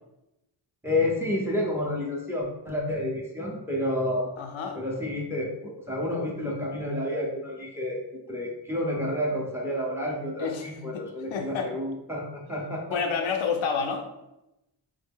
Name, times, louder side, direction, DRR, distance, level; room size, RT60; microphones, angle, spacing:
voice 1, 0.8-4.3 4.7-8.0 8.3-13.0, left 1 dB, 5° right, -2 dB, 0.7 m, -30 dB
voice 2, 4.4-4.8 10.4-10.7 10.9-11.0 11.3-11.7 12.9-14.1, left 5 dB, 85° left, 4 dB, 0.6 m, -29 dB
3.7 x 2.0 x 3.5 m, 0.90 s
wide cardioid pair, 110°, 45 cm